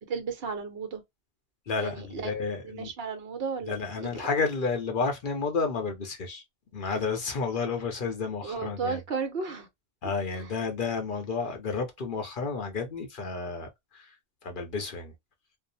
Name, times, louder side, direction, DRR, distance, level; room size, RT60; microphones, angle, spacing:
voice 1, 0.1-1.0 1.8-2.3 2.6-4.2 8.4-9.7, right 5 dB, 60° right, 1.0 m, -34 dB
voice 2, 1.7-2.9 3.6-6.4 6.7-9.0 10.0-14.2 14.4-15.1, left 4 dB, 55° left, 0.7 m, -31 dB
2.6 x 2.0 x 2.6 m
omnidirectional pair, 1.2 m